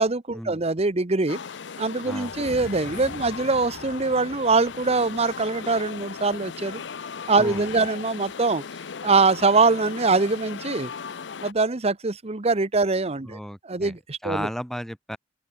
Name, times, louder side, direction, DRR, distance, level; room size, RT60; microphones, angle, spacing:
voice 1, 0.0-1.4 1.8-6.8 7.3-8.6 9.0-10.9 11.4-13.4 13.6-14.5, right 3 dB, 35° right, 1.0 m, -23 dB
sound 1, 1.3-11.5, left 6 dB, 80° left, 0.7 m, -37 dB
voice 2, 2.0-2.6 7.4-7.6 13.3-13.9 14.2-15.2, equal, ahead, 3.3 m, -34 dB
sound 2, 2.2-6.6, left 1 dB, 45° left, 2.0 m, -45 dB
open air
head